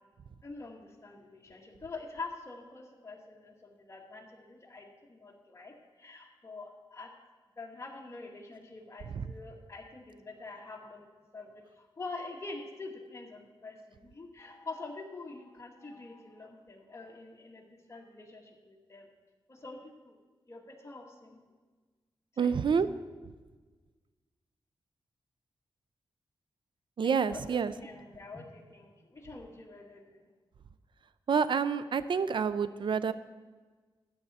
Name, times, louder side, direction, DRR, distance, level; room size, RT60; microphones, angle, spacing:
voice 1, 0.4-7.1 7.6-11.1 11.3-19.1 19.5-20.2 20.5-21.4 22.3-22.5 27.0-30.3, left 3 dB, 30° left, 0 dB, 1.7 m, -46 dB
voice 2, 22.4-22.9 27.0-27.7 31.3-33.1, right 6 dB, 60° right, 14 dB, 0.5 m, -28 dB
13.0 x 8.7 x 4.2 m, 1.4 s
wide cardioid pair, 90°, 9 cm